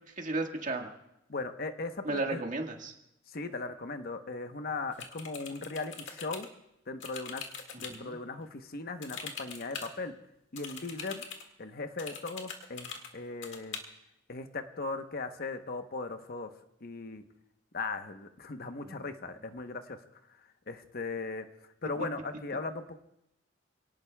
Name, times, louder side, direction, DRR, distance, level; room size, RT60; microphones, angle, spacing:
voice 1, 0.2-0.9 2.0-2.9 7.7-8.1 18.8-19.0, right 2 dB, 45° right, 2 dB, 1.6 m, -34 dB
voice 2, 1.3-2.4 3.3-6.5 6.9-7.5 7.8-10.2 10.5-11.2 11.6-13.8 14.3-16.5 16.8-17.2 17.7-20.0 20.7-21.5 21.8-23.0, left 3 dB, 50° left, 7 dB, 0.9 m, -38 dB
sound 1, 4.9-6.5 7.0-8.0 9.0-9.9 10.6-11.4 12.0-13.1 13.4-13.8, left 6 dB, 70° left, 1.9 m, -42 dB
28.0 x 18.0 x 2.3 m, 0.83 s
head